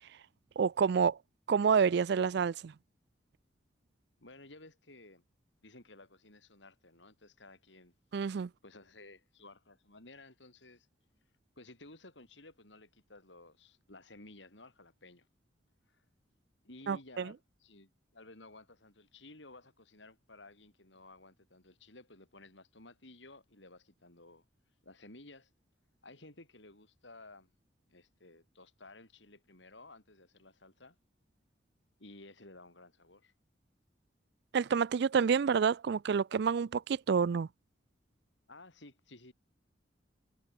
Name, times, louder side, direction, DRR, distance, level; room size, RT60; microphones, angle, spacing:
voice 1, 0.6-1.2 1.5-2.7 8.1-8.5 16.9-17.3 34.5-37.5, right 6 dB, 60° right, 0.4 m, -28 dB
voice 2, 4.2-5.2 5.6-7.9 8.6-10.9 11.6-15.3 15.9-16.0 16.6-24.4 24.8-25.5 26.0-27.5 27.9-31.0 32.0-33.3 38.5-39.3, left 2 dB, 75° left, 5.7 m, -55 dB
head